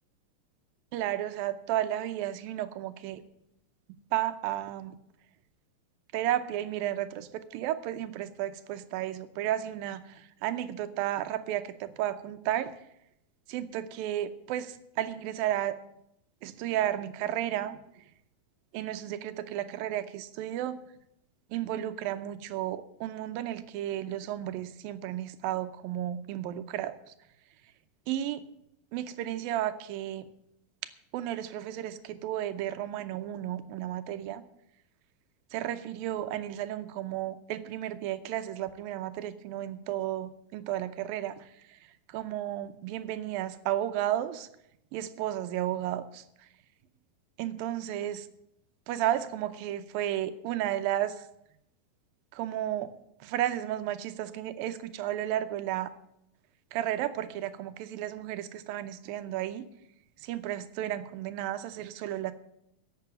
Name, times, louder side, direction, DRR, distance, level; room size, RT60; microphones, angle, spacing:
voice 1, 0.9-3.2 4.1-5.0 6.1-12.8 13.5-15.8 16.4-18.0 18.7-20.8 21.5-27.0 28.1-28.4 28.9-30.3 31.1-34.4 35.5-44.5 44.9-46.5 47.4-48.3 48.9-51.3 52.3-55.9 56.7-59.6 60.2-62.3, right 12 dB, 85° right, 11 dB, 2.6 m, -33 dB
11.5 x 7.8 x 9.0 m, 0.78 s
omnidirectional pair, 4.1 m